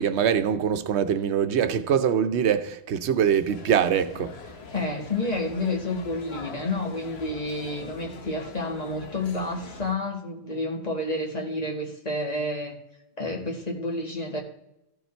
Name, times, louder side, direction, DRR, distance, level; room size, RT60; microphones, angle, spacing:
voice 1, 0.0-4.3, right 8 dB, 80° right, 1.0 m, -23 dB
sound 1, 3.5-9.9, left 4 dB, 70° left, 1.2 m, -43 dB
voice 2, 4.7-12.8 13.2-14.4, left 2 dB, 35° left, 2.0 m, -30 dB
14.5 x 5.5 x 4.4 m
omnidirectional pair, 1.1 m